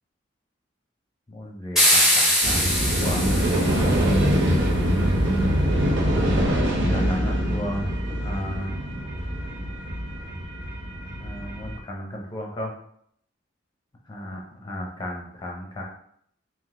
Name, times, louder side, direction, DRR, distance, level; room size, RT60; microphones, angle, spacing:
voice 1, 1.3-3.2 6.2-8.8 11.2-12.7 14.1-15.8, equal, 25° left, -1 dB, 0.7 m, -33 dB
sound 1, 1.8-4.2, equal, ahead, 1.1 m, -22 dB
sound 2, 2.4-11.8, equal, 85° right, 0.9 m, -24 dB
3.8 x 2.8 x 3.7 m, 0.68 s
head